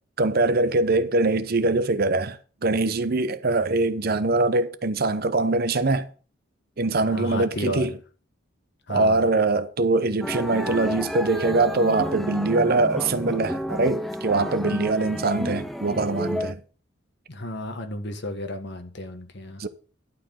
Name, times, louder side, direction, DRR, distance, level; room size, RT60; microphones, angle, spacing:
voice 1, 0.2-6.1 6.8-7.9 8.9-16.6 19.6-19.7, right 2 dB, 50° right, 0.8 m, -23 dB
voice 2, 7.1-7.9 8.9-9.3 17.3-19.6, left 1 dB, 55° left, 1.6 m, -32 dB
sound 1, 10.2-16.5, equal, ahead, 0.6 m, -31 dB
11.5 x 4.5 x 7.5 m
head